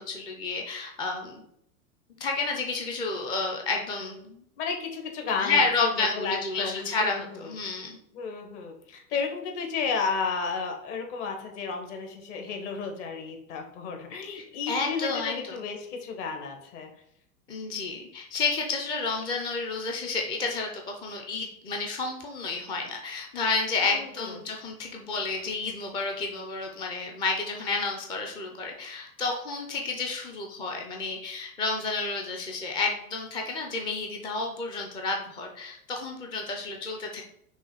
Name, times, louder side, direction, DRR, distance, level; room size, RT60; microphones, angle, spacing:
voice 1, 0.0-1.4 2.2-4.4 5.4-8.0 14.3-15.6 17.5-37.2, left 3 dB, 10° left, 1 dB, 0.4 m, -30 dB
voice 2, 4.6-7.5 8.1-16.9 23.8-24.4, left 5 dB, 55° left, 4 dB, 1.4 m, -33 dB
6.0 x 2.3 x 3.9 m, 0.72 s
hypercardioid pair, 105°, 44 cm